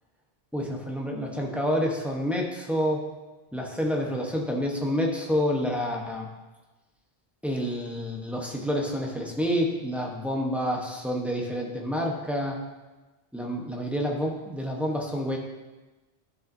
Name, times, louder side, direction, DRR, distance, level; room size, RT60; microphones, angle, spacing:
voice 1, 0.5-3.0 3.5-6.3 7.4-12.6 13.3-15.4, equal, ahead, -1 dB, 0.8 m, -28 dB
11.5 x 5.5 x 2.6 m, 1.2 s
omnidirectional pair, 1.1 m